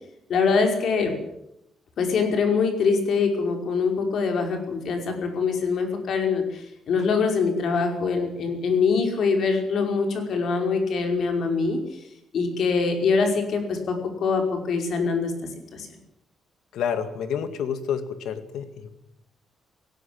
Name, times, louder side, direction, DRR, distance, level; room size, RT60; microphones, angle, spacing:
voice 1, 0.3-1.2 2.0-11.8 12.3-15.3 15.7-15.9, left 5 dB, 60° left, 4 dB, 5.3 m, -24 dB
voice 2, 16.7-18.9, left 7 dB, 85° left, 10 dB, 2.1 m, -29 dB
18.0 x 17.5 x 8.9 m, 0.81 s
cardioid pair, 160°, 0 cm